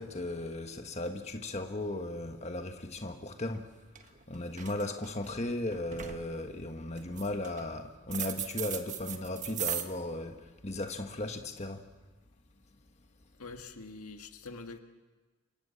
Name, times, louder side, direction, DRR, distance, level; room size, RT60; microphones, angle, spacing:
voice 1, 0.0-3.7 4.0-11.9, left 1 dB, 30° left, 1.5 m, -36 dB
sound 1, 3.5-3.6 4.0-4.2 4.5-5.3 5.7-6.2 7.0-7.6 8.1-9.8, right 9 dB, 35° right, 1.6 m, -37 dB
voice 2, 13.4-14.8, left 3 dB, 90° left, 1.9 m, -45 dB
28.5 x 25.5 x 7.1 m
head